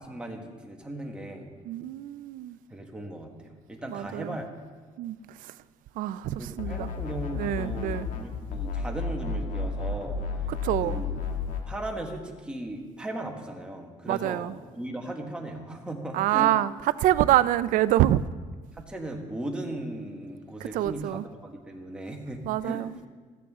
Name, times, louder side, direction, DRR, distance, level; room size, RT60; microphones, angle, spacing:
voice 1, 0.0-1.5 2.7-4.5 6.4-10.2 10.8-11.2 11.7-16.5 18.7-22.8, right 1 dB, 5° right, 1.6 m, -37 dB
voice 2, 1.7-2.6 3.9-4.4 5.0-5.2 5.4-5.5 6.0-6.9 7.3-8.1 10.5-11.0 14.1-14.5 16.1-16.7 17.0-18.2 20.7-21.3 22.5-22.9, right 13 dB, 85° right, 0.5 m, -26 dB
sound 1, 6.6-8.2 8.5-11.6, left 5 dB, 75° left, 1.6 m, -32 dB
15.0 x 14.5 x 3.7 m
cardioid pair, 165°, 13 cm